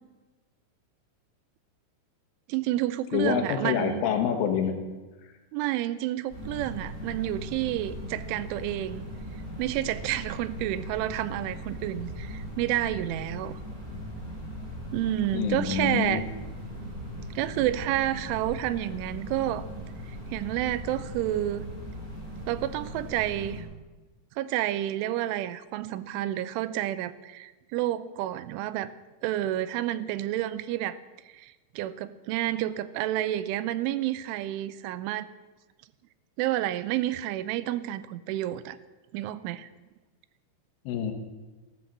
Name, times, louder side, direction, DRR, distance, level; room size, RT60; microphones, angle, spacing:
voice 1, 2.5-4.0 5.5-9.1 9.6-13.6 14.9-16.3 17.4-19.7 20.1-21.7 22.5-23.7 24.4-28.9 29.2-31.0 31.3-35.3 36.4-38.8 39.1-39.7, right 13 dB, 85° right, 14 dB, 3.1 m, -30 dB
voice 2, 3.1-4.8 15.3-16.3 40.9-41.1, left 8 dB, 85° left, 5 dB, 3.9 m, -27 dB
sound 1, 6.3-23.6, equal, 15° left, 7.5 m, -39 dB
15.5 x 12.5 x 7.5 m, 1.2 s
omnidirectional pair, 5.5 m